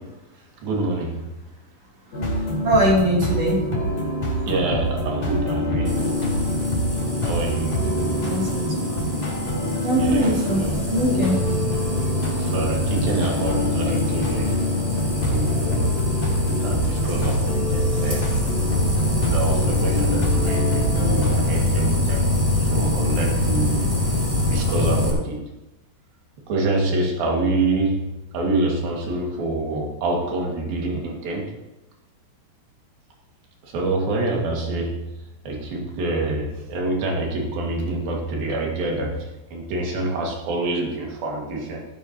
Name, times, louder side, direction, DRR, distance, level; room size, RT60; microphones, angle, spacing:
voice 1, 0.6-1.3 4.5-6.4 7.2-8.2 10.0-10.8 12.4-14.6 15.3-16.0 16.5-18.2 19.2-22.3 22.6-23.8 24.5-25.4 26.5-28.1 28.3-31.5 33.6-35.0 35.4-41.9, right 2 dB, 70° right, -1 dB, 4.0 m, -26 dB
sound 1, 2.1-21.4, equal, 50° left, 3.9 m, -26 dB
voice 2, 2.6-3.7 8.2-9.1 9.8-11.6, equal, 45° right, -4 dB, 4.1 m, -22 dB
sound 2, 5.8-25.1, left 2 dB, 10° right, 2.3 m, -24 dB
16.0 x 10.5 x 3.0 m, 0.99 s
omnidirectional pair, 4.3 m